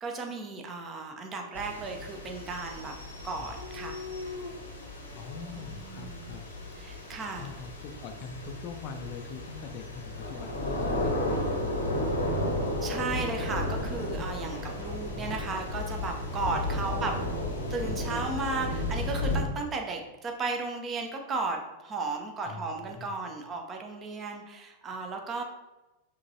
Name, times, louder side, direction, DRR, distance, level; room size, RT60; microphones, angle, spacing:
voice 1, 0.0-2.9 3.2-4.0 5.5-6.3 6.8-7.5 12.8-17.2 17.7-25.4, right 3 dB, 25° right, 3 dB, 0.7 m, -35 dB
sound 1, 1.5-19.4, left 1 dB, 75° left, 0.8 m, -34 dB
Dog, 3.5-5.7 6.3-7.1 11.2-13.5 14.3-14.7 17.3-18.6, left 2 dB, 70° right, 0.8 m, -43 dB
voice 2, 5.1-6.5 7.4-12.5 14.8-15.5 16.8-16.9 22.4-23.1, left 5 dB, 40° left, 6 dB, 0.4 m, -43 dB
5.1 x 3.0 x 2.7 m, 1.1 s
figure-of-eight pair, 90°, 0 cm